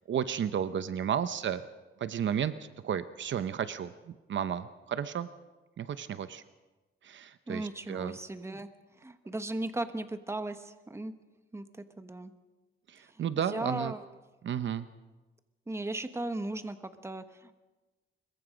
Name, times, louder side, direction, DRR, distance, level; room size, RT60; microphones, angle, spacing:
voice 1, 0.1-1.6 2.0-2.5 2.8-5.3 5.8-6.4 7.0-8.2 12.9-13.9 14.4-14.9, right 8 dB, 65° right, 12 dB, 0.8 m, -33 dB
voice 2, 7.5-8.7 9.0-11.1 11.5-12.3 13.1-14.0 15.7-17.5, right 2 dB, 10° right, 9 dB, 1.2 m, -37 dB
25.0 x 22.0 x 5.2 m, 1.2 s
cardioid pair, 115°, 21 cm